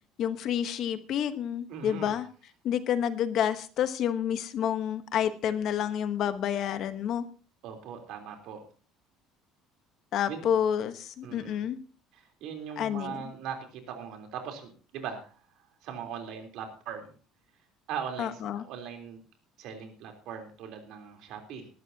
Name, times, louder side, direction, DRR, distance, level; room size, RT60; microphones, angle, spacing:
voice 1, 0.2-2.3 2.6-7.2 10.1-11.8 12.8-13.2 18.2-18.6, left 9 dB, 45° left, 11 dB, 1.0 m, -29 dB
voice 2, 1.7-2.2 7.6-8.6 10.3-10.5 11.2-11.6 12.1-15.4 15.8-17.1 17.9-19.2 19.6-21.7, right 7 dB, 55° right, 4 dB, 3.4 m, -40 dB
20.0 x 12.0 x 2.8 m, 0.38 s
cardioid pair, 170°, 0 cm